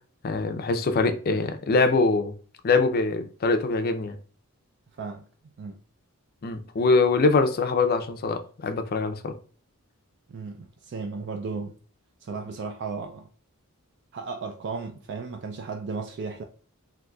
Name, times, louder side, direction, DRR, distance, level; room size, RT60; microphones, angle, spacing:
voice 1, 0.2-2.3 2.6-4.2 6.4-9.3, left 3 dB, 45° left, 0.4 m, -23 dB
voice 2, 10.3-11.8 12.2-13.3 14.1-16.4, right 4 dB, 50° right, 0.3 m, -35 dB
3.8 x 2.7 x 2.2 m
head